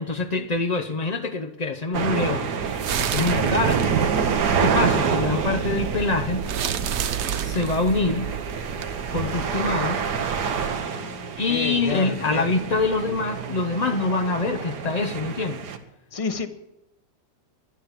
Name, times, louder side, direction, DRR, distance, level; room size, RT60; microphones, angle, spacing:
voice 1, 0.0-2.5 3.0-3.8 4.6-6.5 7.3-8.3 9.1-10.0 11.4-15.6, left 3 dB, 55° left, 3 dB, 0.4 m, -25 dB
sound 1, 1.9-15.8, right 6 dB, 75° right, 1.7 m, -27 dB
sound 2, 2.6-10.7, right 8 dB, 60° right, 0.7 m, -32 dB
voice 2, 10.9-12.4 16.1-16.5, left 4 dB, 25° left, 9 dB, 0.8 m, -31 dB
12.0 x 11.0 x 7.3 m, 0.91 s
omnidirectional pair, 1.8 m